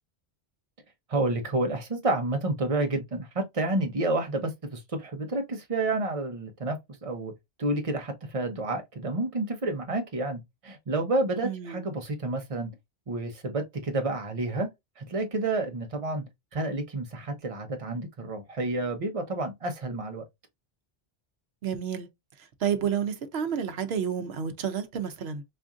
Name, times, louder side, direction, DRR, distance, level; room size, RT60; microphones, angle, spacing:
voice 1, 1.1-7.3 7.6-12.7 13.1-14.7 15.0-16.2 16.5-20.2, right 2 dB, 35° right, 0.9 m, -30 dB
voice 2, 11.4-11.9 21.6-22.1 22.6-25.4, right 8 dB, 80° right, 0.9 m, -30 dB
4.3 x 2.6 x 2.4 m
omnidirectional pair, 1.0 m